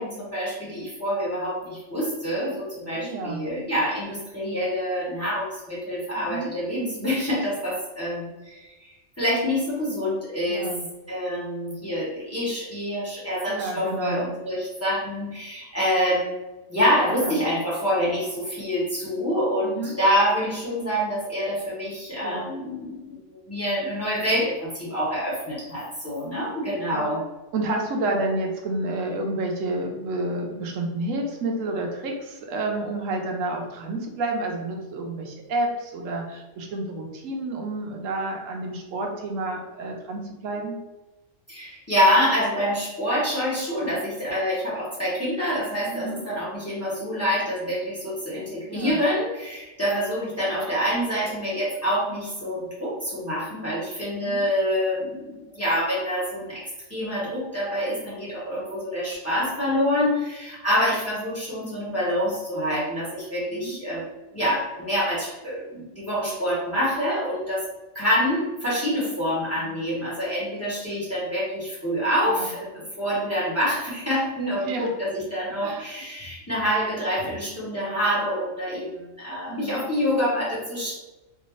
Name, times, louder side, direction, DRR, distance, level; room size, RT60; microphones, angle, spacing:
voice 1, 0.0-8.7 9.2-10.7 11.1-16.3 16.7-27.2 41.5-67.7 67.9-81.0, equal, 10° left, -7 dB, 1.1 m, -26 dB
voice 2, 2.9-3.4 6.2-6.5 10.4-10.9 13.5-14.3 17.2-17.4 19.6-19.9 22.2-22.5 26.9-27.1 27.5-40.8 45.8-46.3 48.7-49.0 54.2-54.4 63.5-63.8 69.6-69.8 72.3-72.5 74.5-74.9 75.6-75.8 79.5-79.8, right 2 dB, 80° right, 1 dB, 1.0 m, -30 dB
3.4 x 2.8 x 3.0 m, 1.1 s
omnidirectional pair, 1.3 m